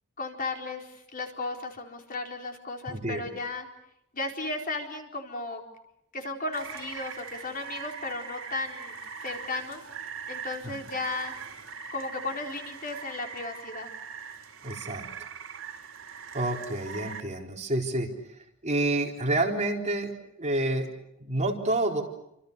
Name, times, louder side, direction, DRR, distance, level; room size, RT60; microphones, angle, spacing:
voice 1, 0.2-3.7 4.1-5.6 6.1-9.0 9.2-9.8 10.3-11.3 11.9-13.9, left 3 dB, 40° left, 2 dB, 4.2 m, -35 dB
voice 2, 2.9-3.2 10.6-10.7 14.6-15.1 16.3-20.9 21.2-22.0, right 2 dB, 35° right, 1 dB, 4.1 m, -29 dB
Rain, 6.5-17.2, right 6 dB, 65° right, 4.3 m, -41 dB
30.0 x 26.5 x 6.7 m, 0.80 s
head